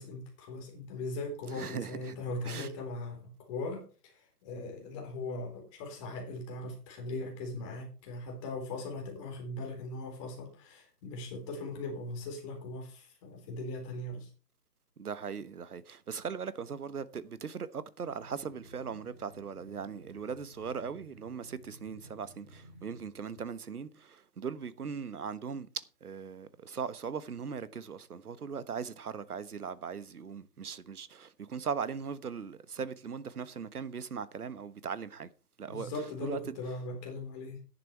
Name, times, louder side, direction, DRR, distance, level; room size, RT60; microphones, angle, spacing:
voice 1, 0.0-14.3 35.7-37.6, left 2 dB, 20° left, 3.7 m, -39 dB
voice 2, 1.5-2.2 2.4-2.7 15.0-35.3 35.6-35.9 36.2-36.4, right 6 dB, 65° right, 1.3 m, -39 dB
sound 1, 18.1-23.1, equal, 10° right, 0.6 m, -54 dB
10.5 x 10.0 x 4.7 m
figure-of-eight pair, 155°, 48 cm